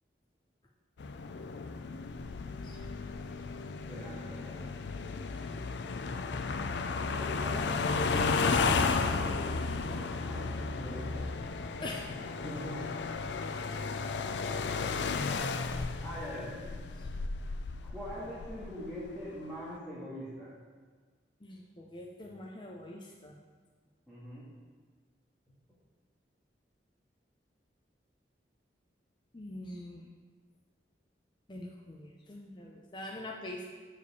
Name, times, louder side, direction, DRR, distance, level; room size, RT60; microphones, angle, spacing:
sound 1, 1.0-19.2, left 4 dB, 75° left, 0.4 m, -33 dB
voice 1, 3.9-4.7 7.0-9.0 9.2-9.4 9.9-11.2 12.4-12.9 16.0-16.6 17.8-20.5 24.1-24.5, equal, ahead, -12 dB, 1.8 m, -42 dB
voice 2, 21.4-23.4 29.3-30.0 31.5-33.7, left 1 dB, 25° left, -1 dB, 0.6 m, -44 dB
6.5 x 4.9 x 6.8 m, 1.5 s
head